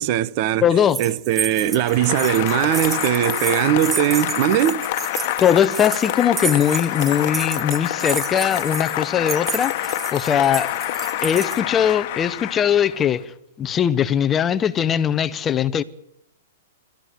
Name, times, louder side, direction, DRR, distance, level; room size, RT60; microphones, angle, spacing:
voice 1, 0.0-0.7 1.0-4.8, right 12 dB, 40° right, 0.8 m, -20 dB
voice 2, 0.6-1.0 5.4-10.7 11.2-13.3 13.6-15.8, left 9 dB, 20° left, 0.8 m, -20 dB
sound 1, 0.9-11.6, right 6 dB, 15° right, 1.2 m, -31 dB
Applause, 1.7-13.2, left 16 dB, 45° left, 1.3 m, -27 dB
27.5 x 13.0 x 9.4 m
hypercardioid pair, 150°, 0 cm